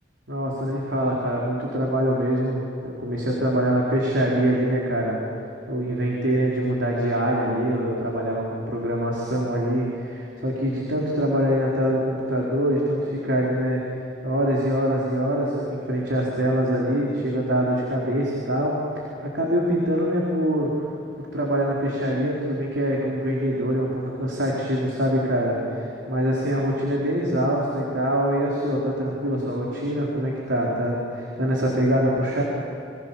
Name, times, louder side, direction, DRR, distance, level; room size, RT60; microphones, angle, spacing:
voice 1, 0.3-5.2 5.7-13.8 14.2-20.7 21.2-32.4, equal, 75° right, -3 dB, 4.5 m, -24 dB
28.5 x 24.5 x 7.3 m, 2.8 s
head